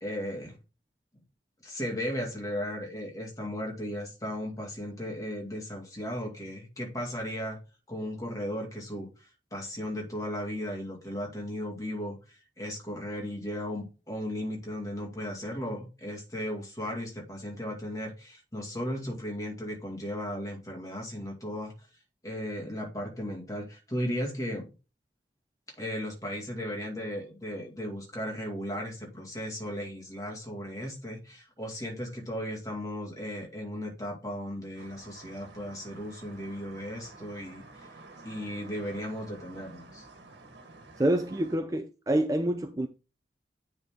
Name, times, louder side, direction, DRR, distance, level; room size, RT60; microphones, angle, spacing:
voice 1, 0.0-0.6 1.6-7.6 7.9-21.7 22.2-24.7 25.8-37.9 38.2-40.1, equal, 20° left, 2.4 m, -36 dB
sound 1, 34.8-41.6, right 3 dB, 70° right, 1.7 m, -50 dB
voice 2, 41.0-42.9, right 1 dB, 20° right, 0.4 m, -27 dB
9.6 x 4.1 x 3.7 m
head